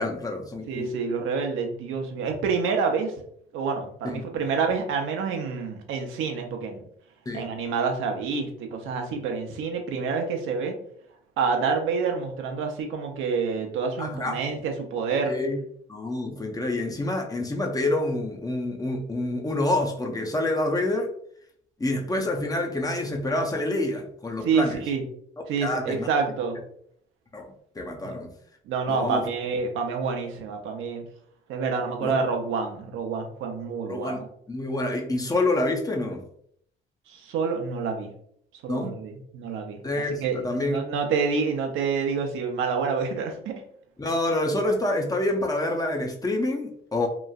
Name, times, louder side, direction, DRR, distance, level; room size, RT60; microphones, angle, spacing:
voice 1, 0.0-0.9 4.0-4.2 7.3-7.5 14.0-14.4 15.2-15.6 15.9-21.1 21.8-24.8 25.6-26.1 27.3-28.3 28.9-29.3 32.0-32.1 33.9-34.2 34.5-36.2 38.7-39.0 39.8-40.8 44.0-47.1, left 2 dB, 20° left, 2 dB, 0.5 m, -27 dB
voice 2, 0.7-3.1 3.5-6.8 7.3-10.7 11.4-15.3 24.4-25.0 25.5-26.6 28.0-28.1 28.7-31.0 31.5-34.3 37.1-38.1 38.6-43.6, right 5 dB, 85° right, 4 dB, 0.6 m, -28 dB
3.0 x 2.4 x 2.3 m, 0.67 s
cardioid pair, 90°, 20 cm